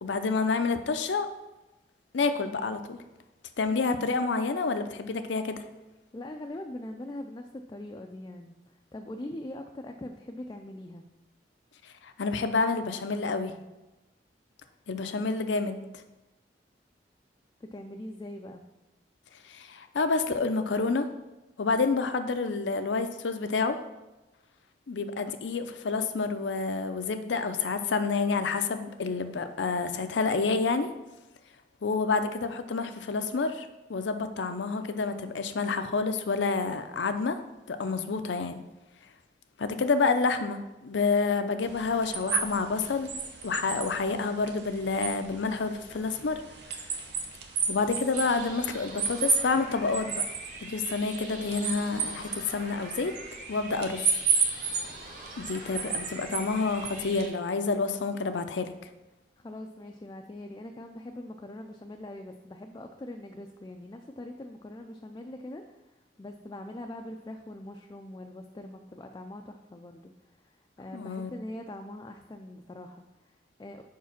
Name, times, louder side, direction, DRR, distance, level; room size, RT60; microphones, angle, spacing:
voice 1, 0.0-1.3 2.1-3.0 3.6-5.6 11.8-13.5 14.9-15.8 19.4-21.1 21.6-23.8 24.9-30.9 31.8-37.4 37.7-38.6 39.6-43.1 43.4-46.4 47.7-50.2 50.6-53.1 53.5-54.2 55.4-58.7 70.9-71.3, left 4 dB, 90° left, 9 dB, 0.5 m, -28 dB
voice 2, 6.1-11.0 17.6-18.6 59.4-65.9 66.2-70.1 70.4-73.8, left 1 dB, 20° left, 3 dB, 0.3 m, -42 dB
sound 1, 41.6-57.3, right 6 dB, 75° right, 0.8 m, -33 dB
sound 2, 48.1-57.3, right 2 dB, 50° right, 1.4 m, -45 dB
5.0 x 4.7 x 5.8 m, 1.0 s
head